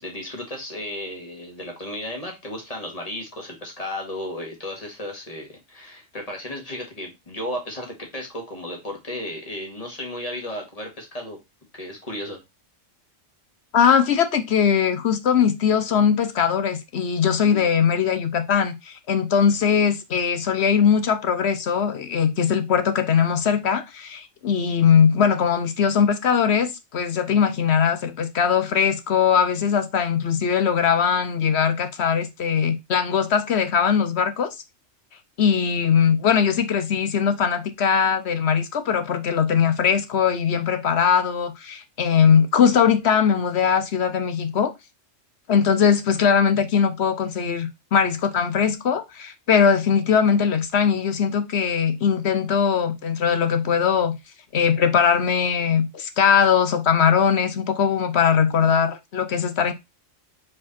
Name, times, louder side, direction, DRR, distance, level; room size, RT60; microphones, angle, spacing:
voice 1, 0.0-11.4 11.7-12.4 17.4-17.6, left 1 dB, 30° left, 2.0 m, -34 dB
voice 2, 13.7-34.5 35.4-44.7 45.5-54.1 54.5-59.7, left 7 dB, 60° left, 0.9 m, -20 dB
5.0 x 4.8 x 4.2 m
omnidirectional pair, 1.3 m